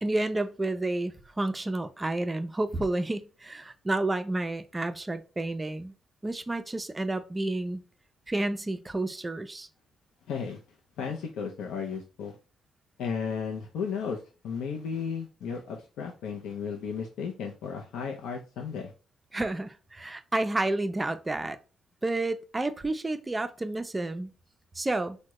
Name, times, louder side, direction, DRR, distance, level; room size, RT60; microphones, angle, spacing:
voice 1, 0.0-5.9 6.2-7.8 8.3-9.7 19.3-21.6 22.0-24.3 24.7-25.2, right 2 dB, 20° right, 0.4 m, -30 dB
voice 2, 10.3-10.6 11.0-12.4 13.0-18.9, left 6 dB, 85° left, 0.5 m, -34 dB
3.4 x 2.1 x 2.9 m
cardioid pair, 90°, 0 cm